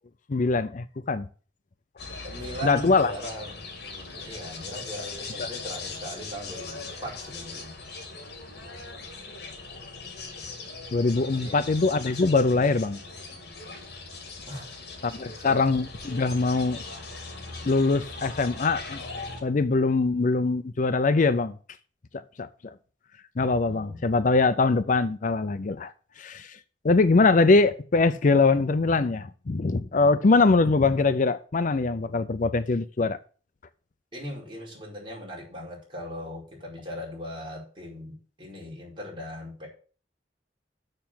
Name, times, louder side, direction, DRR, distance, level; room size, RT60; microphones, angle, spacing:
voice 1, 0.3-1.3 2.6-3.1 5.4-5.5 10.9-13.0 15.0-16.8 17.6-19.1 19.4-21.6 22.1-22.7 23.4-26.6 26.8-33.2, left 3 dB, 45° left, 0.5 m, -23 dB
sound 1, 2.0-19.4, left 3 dB, 65° left, 2.7 m, -40 dB
voice 2, 2.2-3.6 4.2-7.7 11.3-11.7 14.5-14.8 15.1-15.6 23.6-24.0 34.1-39.7, equal, 30° right, 5.0 m, -39 dB
6.9 x 6.7 x 7.5 m
head